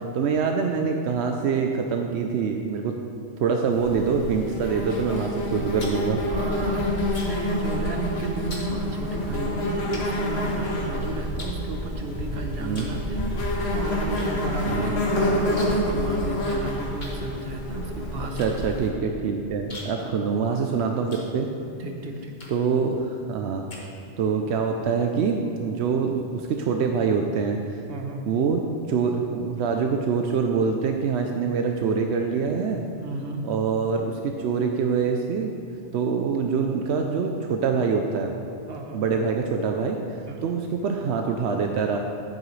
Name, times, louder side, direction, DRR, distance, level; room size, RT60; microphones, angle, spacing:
voice 1, 0.0-3.0 3.4-6.2 12.6-12.9 14.6-14.9 18.4-21.5 22.5-23.7 24.2-27.8 28.3-28.6 28.9-32.8 33.4-35.5 35.9-38.3 38.9-42.0, right 5 dB, 85° right, 3 dB, 0.9 m, -25 dB
Insect, 3.7-18.9, left 1 dB, 75° left, 1.8 m, -28 dB
sound 1, 5.7-7.5 7.8-8.1 8.5-8.7 9.3-9.4 9.9-10.9 11.4-12.2 12.7-13.0 13.3-14.3 14.6-14.7 14.9-15.9 16.2-16.3 17.0-21.8 22.3-22.8 23.3-24.3, left 2 dB, 45° left, 1.5 m, -43 dB
voice 2, 6.3-18.7 20.0-20.3 21.8-22.3 27.9-28.2 33.0-33.5 38.7-39.0 40.3-40.5, right 2 dB, 65° right, 2 dB, 1.2 m, -33 dB
11.0 x 8.9 x 3.2 m, 2.6 s
omnidirectional pair, 1.1 m